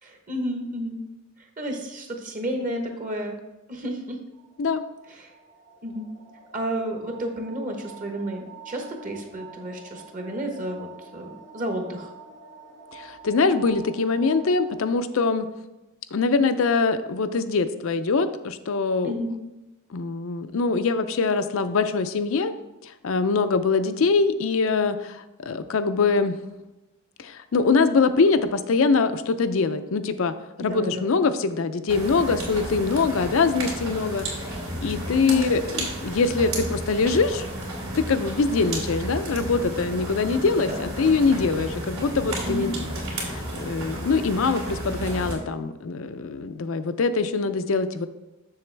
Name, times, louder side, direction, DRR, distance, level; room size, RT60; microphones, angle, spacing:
voice 1, 0.0-1.0 1.6-3.4 3.7-4.2 5.1-5.3 5.8-6.0 6.5-10.9 11.1-12.1 19.0-19.4 30.6-31.1 35.2-35.5 40.7-41.1 42.4-42.7, equal, 35° right, 3 dB, 1.0 m, -31 dB
sound 1, 4.3-15.0, right 5 dB, 60° right, 1.5 m, -47 dB
voice 2, 12.9-15.5 16.1-19.1 19.9-22.5 22.8-26.4 27.2-37.4 37.9-42.8 43.2-48.1, left 4 dB, 65° left, 11 dB, 0.5 m, -23 dB
sound 2, 31.9-45.4, right 1 dB, 75° right, 2.7 m, -32 dB
7.1 x 6.7 x 3.3 m, 1.0 s
head